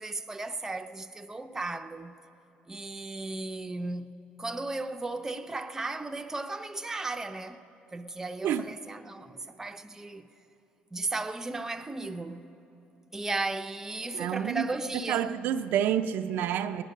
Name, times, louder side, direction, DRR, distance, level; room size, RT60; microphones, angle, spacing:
voice 1, 0.0-2.2 2.7-7.6 7.9-10.3 10.9-12.5 13.1-15.4, right 2 dB, 15° right, 0.6 m, -35 dB
voice 2, 14.1-14.7 15.1-16.8, right 10 dB, 75° right, 0.5 m, -28 dB
18.5 x 10.0 x 6.5 m
cardioid pair, 105°, 3 cm